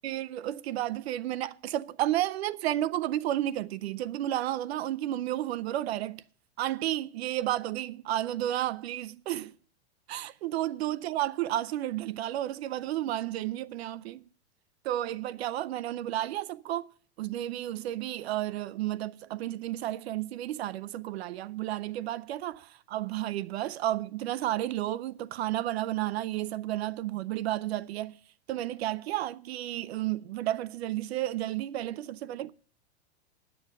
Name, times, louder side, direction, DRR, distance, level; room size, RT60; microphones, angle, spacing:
voice 1, 0.0-6.2 6.6-9.5 10.1-14.2 14.8-16.9 17.2-28.2 28.5-32.5, right 13 dB, 65° right, 0.6 m, -32 dB
10.5 x 7.8 x 7.3 m
supercardioid pair, 160°, 33 cm